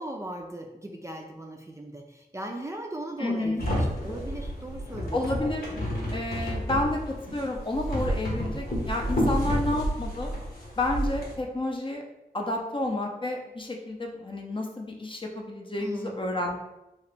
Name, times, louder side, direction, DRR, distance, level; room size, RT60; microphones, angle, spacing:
voice 1, 0.0-5.2 15.8-16.3, right 1 dB, 20° right, 1 dB, 0.4 m, -38 dB
voice 2, 3.2-3.6 5.1-5.7 6.1-10.3 10.8-12.0 12.3-16.6, left 2 dB, 30° left, 1 dB, 0.6 m, -30 dB
sound 1, 3.6-11.3, equal, 70° left, 1.1 m, -30 dB
2.9 x 2.8 x 3.3 m, 0.97 s
cardioid pair, 55°, 16 cm